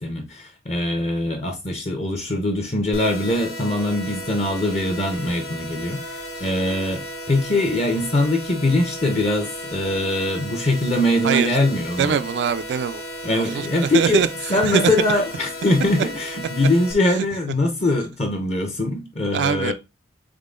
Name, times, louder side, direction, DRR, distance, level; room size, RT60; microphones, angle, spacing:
voice 1, 0.0-6.0 6.4-12.2 13.2-14.2 14.5-19.7, left 1 dB, 35° left, 0.7 m, -22 dB
sound 1, 2.9-16.9, equal, 60° left, 1.1 m, -35 dB
voice 2, 11.2-11.6 12.0-13.0 13.3-15.2 17.2-17.3 19.3-19.7, right 7 dB, 65° right, 0.3 m, -23 dB
3.7 x 3.6 x 3.7 m
head